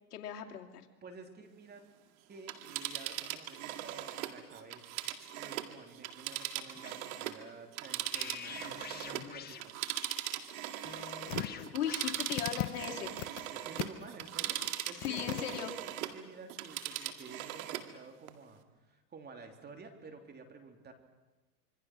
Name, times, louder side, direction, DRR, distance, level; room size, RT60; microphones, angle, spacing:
voice 1, 0.1-0.9 11.7-13.1 14.9-15.7, left 10 dB, 75° left, 3 dB, 2.6 m, -37 dB
voice 2, 1.0-1.8 2.3-4.8 5.4-9.7 13.5-20.9, right 4 dB, 20° right, 5 dB, 3.3 m, -51 dB
Telephone, 2.3-7.4 7.7-16.2 16.5-17.9 18.3-18.4, right 13 dB, 65° right, 2.1 m, -39 dB
sound 1, 6.7-7.1 8.1-9.6 10.8-12.5, left 8 dB, 20° left, 1.4 m, -46 dB
sound 2, 11.3-11.7 12.0-13.5 13.8-14.2 14.6-14.7 15.0-15.6 16.1-16.2, left 17 dB, 50° left, 1.1 m, -39 dB
26.0 x 24.0 x 6.2 m, 1.1 s
hypercardioid pair, 120°, 46 cm